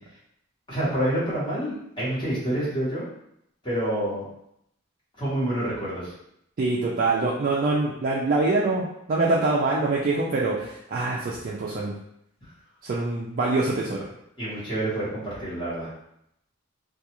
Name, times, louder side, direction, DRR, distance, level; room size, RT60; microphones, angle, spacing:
voice 1, 0.7-3.0 3.6-4.2 5.2-6.1 14.4-15.9, right 1 dB, 25° left, -10 dB, 1.1 m, -27 dB
voice 2, 6.6-11.9 12.8-14.0, right 3 dB, 40° right, -5 dB, 0.3 m, -24 dB
2.3 x 2.3 x 2.8 m, 0.76 s
head